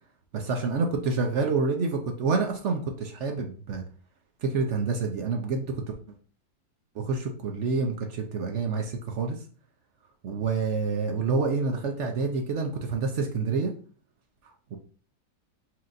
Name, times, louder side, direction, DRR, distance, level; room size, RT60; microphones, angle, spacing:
voice 1, 0.3-3.8 4.4-5.6 6.9-9.4 10.2-13.7 14.7-14.8, right 4 dB, 65° right, 3 dB, 0.7 m, -28 dB
5.9 x 2.9 x 2.5 m, 0.43 s
omnidirectional pair, 1.7 m